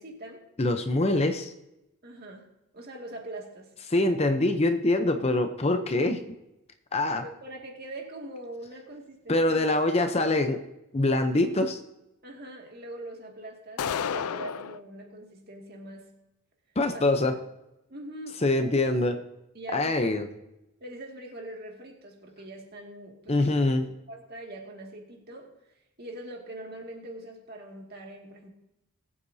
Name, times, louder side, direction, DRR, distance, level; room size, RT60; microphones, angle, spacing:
voice 1, 0.0-0.5 2.0-3.7 7.2-9.8 12.2-16.1 16.9-17.1 17.9-18.4 19.5-20.3 20.8-23.7 24.1-28.5, right 1 dB, 45° right, 1 dB, 2.1 m, -43 dB
voice 2, 0.6-1.5 3.9-6.2 6.9-7.2 9.3-10.6 10.9-11.8 16.8-17.3 18.4-19.1 19.7-20.3 23.3-23.8, left 2 dB, 30° left, 7 dB, 0.7 m, -24 dB
sound 1, 13.8-14.8, left 7 dB, 85° left, 0.4 m, -30 dB
20.0 x 8.5 x 2.7 m, 0.91 s
head